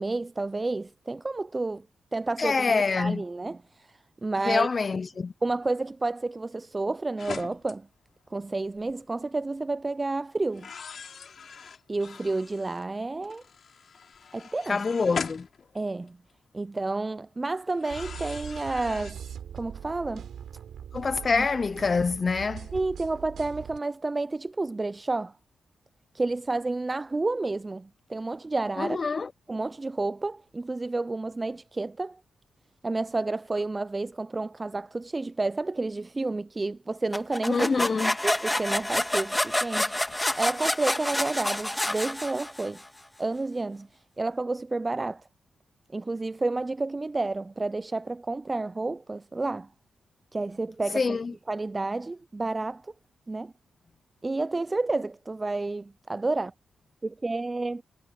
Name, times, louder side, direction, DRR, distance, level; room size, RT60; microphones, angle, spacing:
voice 1, 0.0-1.9 2.1-4.7 5.4-7.9 8.3-10.7 11.9-13.4 14.3-14.8 15.7-16.2 16.5-19.2 19.5-20.3 21.3-21.5 22.7-25.3 26.1-29.0 29.5-32.2 32.8-37.7 38.2-42.8 43.2-45.3 45.9-49.7 50.3-51.2 51.5-52.9 53.3-53.5 54.2-56.5 57.0-57.8, right 3 dB, 30° right, 0.4 m, -30 dB
voice 2, 2.4-3.2 4.4-5.3 14.7-15.5 20.9-22.7 28.8-29.3 37.5-38.1 51.0-51.3, left 4 dB, 45° left, 0.6 m, -26 dB
sound 1, 7.2-7.7 8.7-8.9 10.5-12.8 13.2-16.3 17.7-19.1, left 6 dB, 65° left, 4.6 m, -40 dB
sound 2, 17.9-23.8, right 8 dB, 80° right, 6.9 m, -41 dB
sound 3, 37.1-42.8, left 1 dB, 10° left, 1.8 m, -28 dB
supercardioid pair, 55°, 0 cm